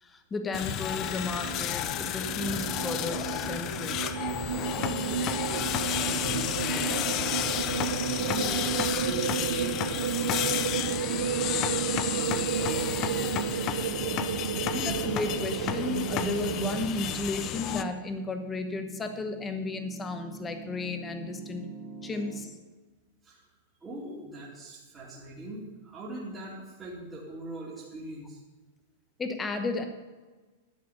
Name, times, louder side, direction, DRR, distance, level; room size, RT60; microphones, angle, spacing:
voice 1, 0.0-4.2 14.7-21.7 22.0-22.5 29.2-29.8, left 3 dB, 10° left, 7 dB, 1.1 m, -34 dB
sound 1, 0.5-17.8, left 11 dB, 30° left, 0.6 m, -32 dB
sound 2, 1.0-16.8, right 9 dB, 80° right, 0.5 m, -32 dB
voice 2, 4.6-7.8 8.1-13.3 23.2-23.5 23.8-28.4, right 1 dB, 10° right, -7 dB, 2.4 m, -42 dB
Piano, 11.4-22.4, right 3 dB, 40° right, 2.4 m, -45 dB
11.5 x 7.7 x 6.9 m, 1.3 s
supercardioid pair, 165°, 0 cm